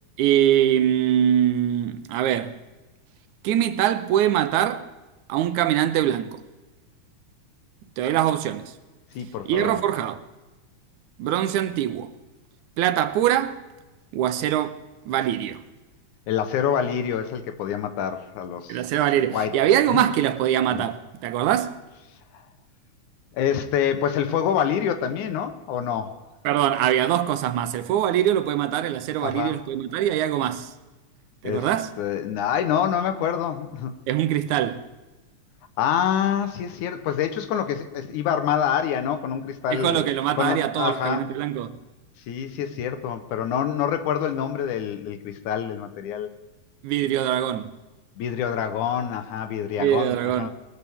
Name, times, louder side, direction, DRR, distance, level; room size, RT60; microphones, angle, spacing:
voice 1, 0.2-2.6 3.4-4.9 5.3-6.4 8.0-8.7 9.5-10.2 11.2-12.1 12.8-13.6 14.1-14.8 15.1-15.6 18.7-21.8 26.4-30.7 31.4-31.9 34.1-34.8 39.7-41.8 46.8-47.7 49.8-50.5, right 11 dB, 85° right, 2.2 m, -23 dB
voice 2, 9.1-9.8 16.3-18.8 19.3-19.5 19.9-20.0 20.7-20.8 23.3-26.2 29.2-29.6 31.4-31.7 32.0-33.9 35.8-40.1 40.4-41.2 42.3-46.3 48.2-50.5, left 9 dB, 85° left, 2.5 m, -26 dB
21.0 x 13.0 x 3.6 m
omnidirectional pair, 3.4 m